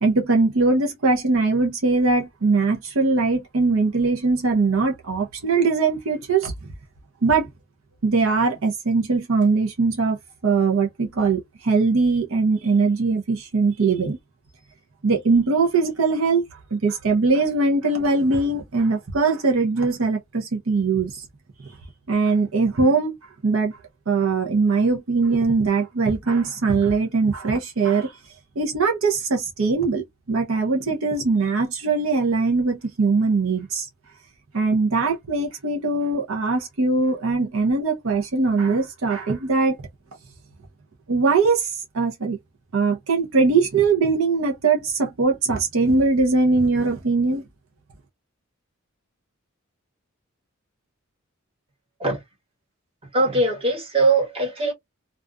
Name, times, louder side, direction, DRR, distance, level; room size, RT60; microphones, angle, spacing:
voice 1, 0.0-6.5 7.2-7.5 8.0-14.2 15.0-21.2 22.1-23.1 23.4-23.8 24.1-28.1 28.6-33.9 34.5-39.8 41.1-42.4 42.7-47.4, right 4 dB, 75° right, 0.6 m, -21 dB
voice 2, 53.1-54.7, right 2 dB, 30° right, 1.2 m, -21 dB
2.4 x 2.3 x 2.2 m
head